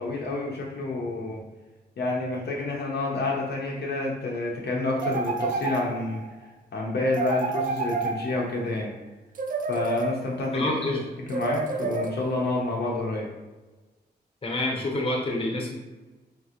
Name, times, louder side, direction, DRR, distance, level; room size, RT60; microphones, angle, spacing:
voice 1, 0.0-1.4 2.0-6.2 6.7-8.9 9.7-10.7 11.3-13.3, left 2 dB, 70° left, -2 dB, 0.7 m, -28 dB
sound 1, 5.0-6.3 7.1-8.7 9.3-10.5 11.3-12.5, right 4 dB, 50° right, 0.4 m, -30 dB
voice 2, 10.5-11.0 14.4-15.8, left 2 dB, 30° left, -1 dB, 0.8 m, -27 dB
3.9 x 2.7 x 2.4 m, 1.2 s
cardioid pair, 70°, 18 cm